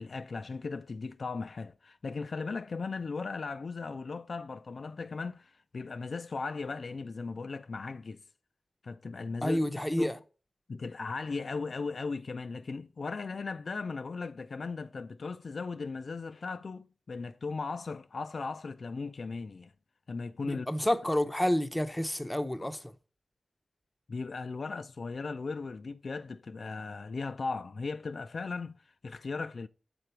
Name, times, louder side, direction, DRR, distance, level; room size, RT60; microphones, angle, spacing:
voice 1, 0.0-8.2 8.8-9.6 10.0-10.1 10.7-19.7 20.1-20.7 22.6-22.7 24.1-29.7, left 4 dB, 65° left, 0.3 m, -37 dB
voice 2, 9.4-10.2 20.4-22.8, left 1 dB, 10° left, 0.6 m, -29 dB
6.8 x 3.9 x 4.4 m
wide cardioid pair, 70°, 0 cm